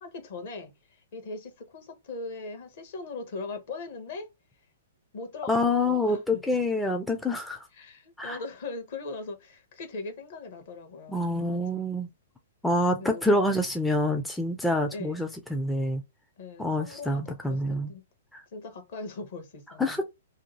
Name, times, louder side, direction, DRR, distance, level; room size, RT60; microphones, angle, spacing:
voice 1, 0.0-4.3 5.1-6.7 7.7-11.9 13.0-13.4 14.9-15.3 16.4-18.0 18.5-20.0, left 3 dB, 50° left, 0.9 m, -40 dB
voice 2, 5.5-7.7 8.2-8.4 11.1-12.1 12.6-16.0 16.6-17.9 18.3-18.4 19.8-20.0, left 1 dB, 5° left, 0.4 m, -27 dB
2.7 x 2.3 x 2.9 m
figure-of-eight pair, 110°, 0 cm